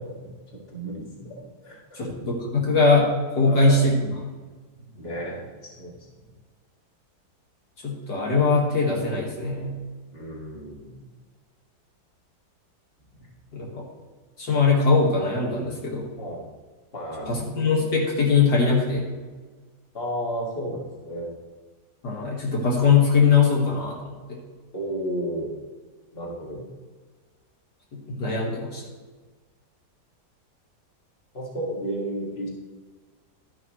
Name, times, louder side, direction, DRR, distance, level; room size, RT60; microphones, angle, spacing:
voice 1, 0.0-2.3 3.4-3.9 4.8-6.3 10.1-11.0 16.2-16.4 16.9-17.4 19.9-21.3 24.7-25.5 26.1-26.7 31.3-32.5, right 1 dB, 35° left, -3 dB, 2.3 m, -33 dB
voice 2, 1.9-4.2 7.8-9.8 13.5-13.9 14.4-16.1 17.3-19.1 22.0-24.0 24.3-24.4 27.9-28.8, left 4 dB, 75° left, -2 dB, 2.4 m, -21 dB
12.0 x 10.5 x 3.2 m, 1.4 s
omnidirectional pair, 1.8 m